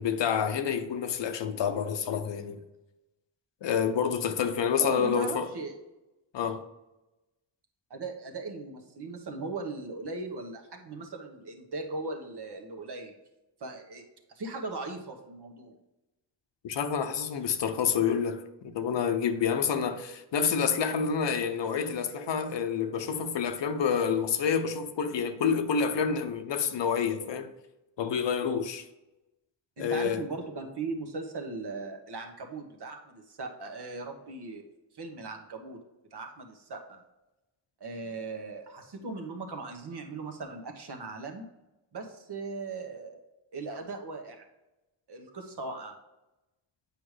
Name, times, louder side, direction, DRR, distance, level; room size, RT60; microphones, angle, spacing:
voice 1, 0.0-2.6 3.6-5.5 6.3-6.6 16.6-27.5 28.0-28.8 29.8-30.2, left 7 dB, 65° left, 0.8 m, -28 dB
voice 2, 4.8-5.8 7.9-13.1 13.6-14.0 14.3-15.8 29.8-34.6 34.9-35.8 36.1-37.0 37.8-41.4 41.9-43.2 43.5-44.4 45.1-45.9, right 3 dB, 60° right, 1.2 m, -38 dB
8.0 x 5.2 x 3.2 m
cardioid pair, 70°, 46 cm